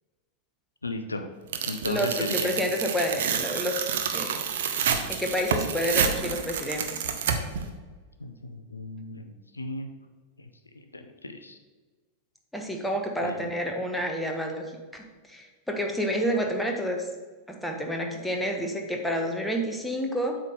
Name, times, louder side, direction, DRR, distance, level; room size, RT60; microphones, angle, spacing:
voice 1, 0.8-1.3 1.7-2.5 8.2-9.9 10.9-11.6 13.2-13.4, left 2 dB, 80° left, 7 dB, 0.6 m, -35 dB
Tearing, 1.5-7.6, right 7 dB, 60° right, 0.8 m, -29 dB
voice 2, 1.8-3.7 4.1-4.4 5.1-7.0 12.5-14.7 14.9-17.1 17.5-20.4, equal, 5° left, 2 dB, 1.2 m, -29 dB
8.1 x 3.8 x 6.5 m, 1.4 s
figure-of-eight pair, 90°, 0 cm